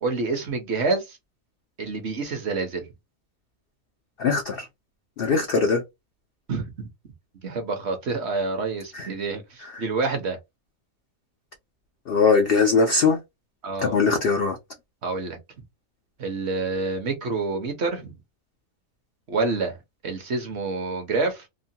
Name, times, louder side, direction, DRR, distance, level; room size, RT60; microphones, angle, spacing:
voice 1, 0.0-1.2 1.8-2.8 6.5-6.9 7.4-10.4 13.6-14.0 15.0-15.4 16.2-18.1 19.3-19.8 20.0-21.5, right 3 dB, 55° right, 0.9 m, -27 dB
voice 2, 4.2-4.7 5.2-5.8 8.9-9.1 9.6-9.8 12.1-13.2 13.8-14.6, left 4 dB, 70° left, 0.5 m, -21 dB
2.9 x 2.1 x 2.7 m
omnidirectional pair, 1.5 m